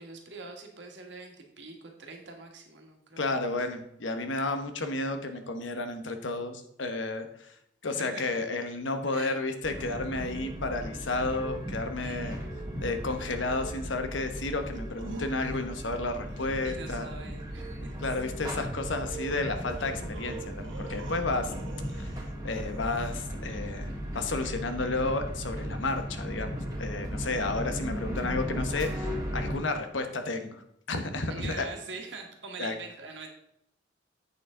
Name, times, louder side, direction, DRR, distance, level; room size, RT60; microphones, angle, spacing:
voice 1, 0.0-3.5 7.9-8.4 9.1-9.4 12.0-12.4 16.6-18.0 31.3-33.3, right 3 dB, 65° right, 2 dB, 1.7 m, -44 dB
voice 2, 3.2-7.5 7.8-12.4 12.8-17.1 18.0-21.5 21.9-22.1 22.4-31.7 32.6-32.8, left 3 dB, 80° left, 7 dB, 1.0 m, -32 dB
sound 1, 9.6-29.5, equal, 20° right, 2.0 m, -36 dB
sound 2, 14.7-15.9 16.3-16.5 18.5-18.6 19.3-22.3 22.6-23.1, right 2 dB, 85° right, 1.1 m, -45 dB
8.4 x 6.7 x 3.8 m, 0.77 s
head